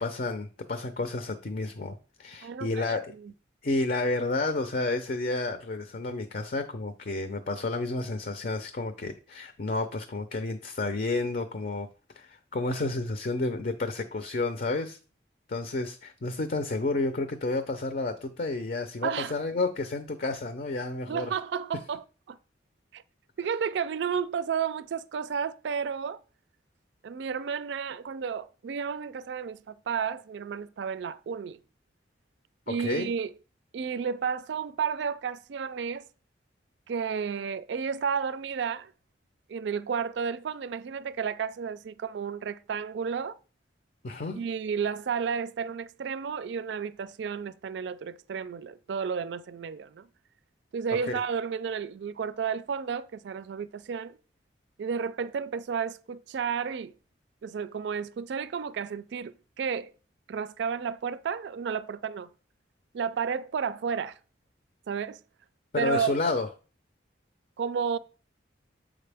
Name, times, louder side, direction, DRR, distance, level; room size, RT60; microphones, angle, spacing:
voice 1, 0.0-3.1 3.6-11.9 12.2-15.0 15.5-21.3 32.7-33.1 44.0-44.4 51.1-51.2 65.7-66.5, left 3 dB, 50° left, 0.5 m, -31 dB
voice 2, 2.4-3.3 19.0-19.3 21.1-22.4 22.9-23.0 23.4-26.2 27.0-31.6 32.7-33.3 33.7-36.1 36.9-38.9 39.5-43.4 44.3-50.1 50.7-54.2 54.8-56.9 57.4-59.9 60.3-62.3 62.9-64.2 64.9-65.2 65.8-66.1 67.6-68.0, right 6 dB, 70° right, 0.3 m, -32 dB
7.5 x 4.9 x 3.4 m
head